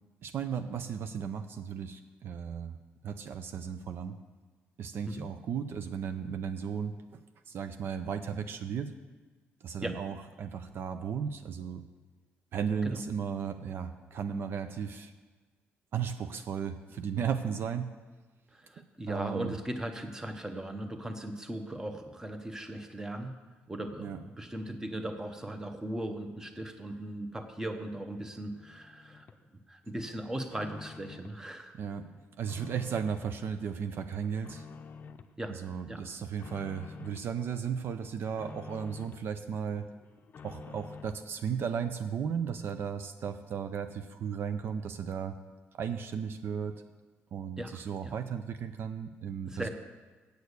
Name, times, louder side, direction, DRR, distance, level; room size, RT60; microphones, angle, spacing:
voice 1, 0.2-2.8 3.0-4.1 4.8-7.2 7.5-8.9 9.6-11.8 12.5-15.1 15.9-17.9 19.1-19.5 24.0-24.2 31.8-32.0 32.4-34.7 35.5-39.9 40.4-45.3 45.7-46.8 47.3-49.7, right 7 dB, 60° right, 9 dB, 0.6 m, -35 dB
voice 2, 18.5-23.3 23.7-29.3 29.7-31.7 35.4-35.6 35.9-36.0 47.6-47.8 48.0-48.1 49.4-49.7, right 1 dB, 10° right, 6 dB, 1.0 m, -38 dB
sound 1, 28.6-29.4 29.8-31.4 31.8-33.4 33.8-35.3 35.7-37.3 37.7-39.3 39.7-41.3, left 5 dB, 45° left, 0.6 m, -50 dB
8.2 x 6.5 x 8.2 m, 1.3 s
cardioid pair, 110°, 4 cm